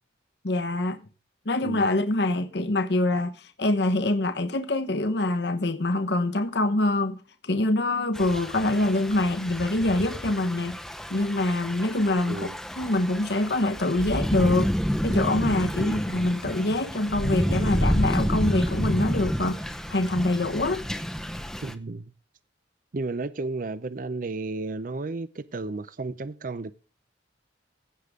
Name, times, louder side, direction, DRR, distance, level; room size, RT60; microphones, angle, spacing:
voice 1, 0.4-1.0 1.4-7.2 7.4-10.8 11.1-12.5 12.8-14.7 15.0-20.8, left 2 dB, 60° left, 1.1 m, -25 dB
Thunder / Rain, 8.1-21.7, equal, ahead, 0.7 m, -29 dB
voice 2, 15.8-16.1 21.6-22.1 22.9-26.7, right 3 dB, 45° right, 0.5 m, -33 dB
16.0 x 6.7 x 3.6 m
head